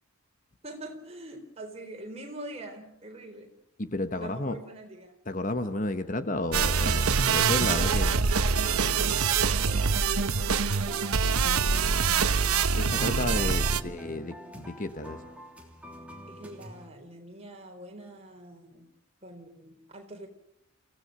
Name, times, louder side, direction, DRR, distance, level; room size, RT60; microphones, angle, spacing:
voice 1, 0.6-3.5 4.1-5.2 7.6-11.1 13.2-14.0 16.3-18.9 19.2-20.3, right 1 dB, 30° right, 3 dB, 4.0 m, -44 dB
voice 2, 3.8-4.6 5.3-8.2 12.7-15.2, left 2 dB, 35° left, 10 dB, 1.1 m, -32 dB
sound 1, 6.5-13.8, right 5 dB, 90° right, 1.0 m, -25 dB
sound 2, 8.8-16.9, equal, 5° right, 3.0 m, -46 dB
28.0 x 16.5 x 6.5 m, 0.76 s
head